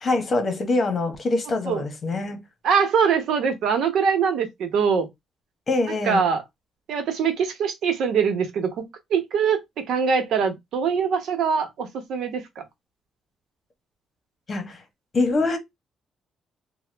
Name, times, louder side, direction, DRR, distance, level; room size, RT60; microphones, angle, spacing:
voice 1, 0.0-2.4 5.7-6.2 14.5-14.8 15.1-15.6, left 3 dB, 40° left, 1.2 m, -24 dB
voice 2, 2.6-5.1 6.0-6.4 6.9-12.6, right 6 dB, 75° right, 0.9 m, -23 dB
2.9 x 2.3 x 3.4 m
cardioid pair, 90°, 0 cm